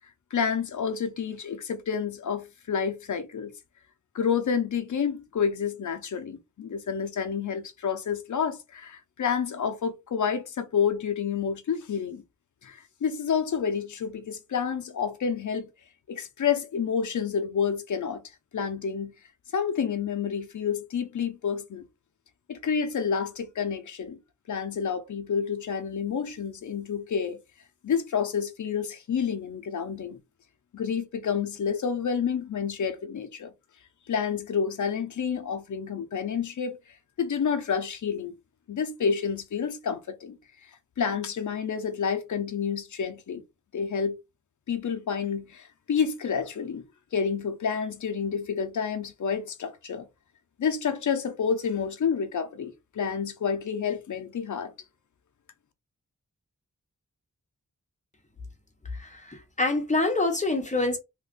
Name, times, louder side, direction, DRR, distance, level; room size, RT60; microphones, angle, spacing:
voice 1, 0.3-3.5 4.1-12.2 12.6-15.7 16.1-18.2 18.5-19.1 19.5-21.9 22.5-24.2 24.5-27.4 27.8-30.2 30.7-33.5 34.1-36.8 37.2-38.3 38.7-40.4 41.0-43.4 43.7-44.2 44.7-46.8 47.1-50.1 50.6-54.7, left 6 dB, 70° left, 0.6 m, -29 dB
voice 2, 59.0-61.0, left 2 dB, 25° left, 0.9 m, -26 dB
3.1 x 2.4 x 3.7 m
wide cardioid pair, 120°, 31 cm